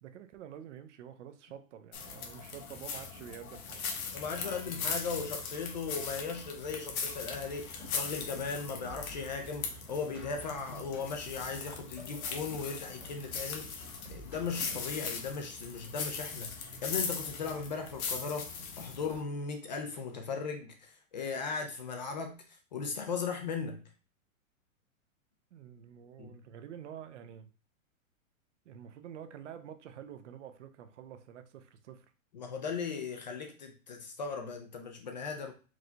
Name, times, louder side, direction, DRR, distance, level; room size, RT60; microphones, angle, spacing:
voice 1, 0.0-3.8 4.4-4.9 25.5-27.5 28.6-32.1, right 9 dB, 60° right, 0.6 m, -48 dB
sound 1, 1.9-19.2, left 5 dB, 85° left, 1.3 m, -40 dB
voice 2, 4.1-23.8 26.2-26.3 32.3-35.5, left 5 dB, 35° left, 0.4 m, -38 dB
sound 2, 7.0-15.4, equal, 5° right, 1.0 m, -51 dB
4.8 x 2.2 x 3.8 m
supercardioid pair, 165°, 41 cm